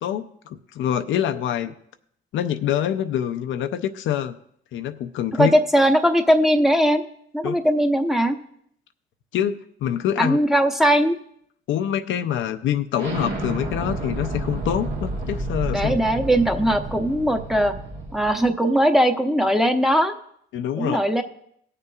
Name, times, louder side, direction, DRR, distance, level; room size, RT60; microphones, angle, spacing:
voice 1, 0.0-1.7 2.3-4.3 4.7-5.5 7.4-7.5 9.3-10.4 11.7-15.9 20.5-21.0, left 10 dB, 75° left, 8 dB, 0.5 m, -25 dB
voice 2, 5.4-7.0 7.3-8.4 10.2-11.2 15.7-17.7 18.1-20.1 20.8-21.2, equal, ahead, 4 dB, 0.8 m, -19 dB
Explosion, 13.0-18.5, right 2 dB, 65° right, 1.6 m, -30 dB
20.0 x 6.7 x 2.4 m, 0.69 s
cardioid pair, 90°, 20 cm